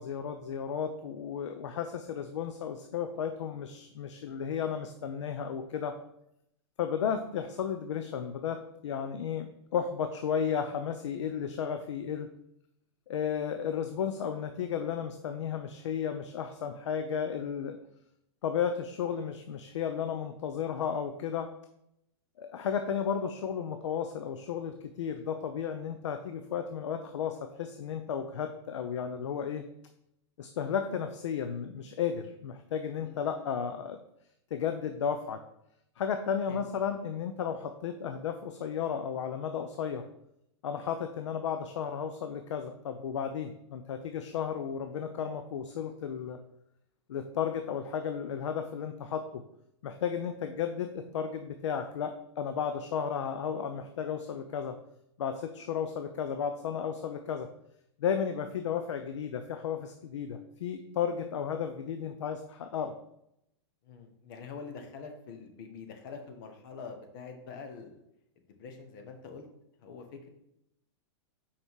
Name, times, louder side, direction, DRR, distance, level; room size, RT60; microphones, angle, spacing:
voice 1, 0.0-6.0 6.8-12.3 13.1-17.8 18.4-21.5 22.4-29.6 30.4-34.0 34.5-35.4 36.0-40.1 40.6-46.4 47.1-49.4 49.8-54.8 55.2-57.5 58.0-62.9, left 7 dB, 85° left, 7 dB, 0.7 m, -33 dB
voice 2, 63.8-68.0 68.4-69.5 69.8-70.3, left 5 dB, 50° left, 5 dB, 1.4 m, -45 dB
5.6 x 5.0 x 4.7 m, 0.79 s
supercardioid pair, 155°, 15 cm